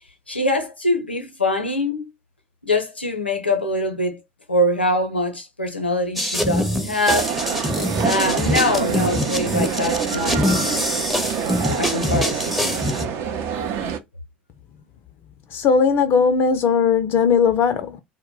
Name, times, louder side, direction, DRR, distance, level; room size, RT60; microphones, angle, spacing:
voice 1, 0.3-2.1 2.6-4.2 4.5-7.3 8.0-10.9 11.8-12.9, left 1 dB, 85° left, 0.6 m, -23 dB
sound 1, 6.2-13.1, equal, ahead, 0.6 m, -24 dB
sound 2, 7.1-14.0, right 7 dB, 50° right, 0.5 m, -26 dB
voice 2, 15.5-18.0, left 6 dB, 40° left, 0.4 m, -18 dB
2.1 x 2.0 x 3.7 m
figure-of-eight pair, 70°, 6 cm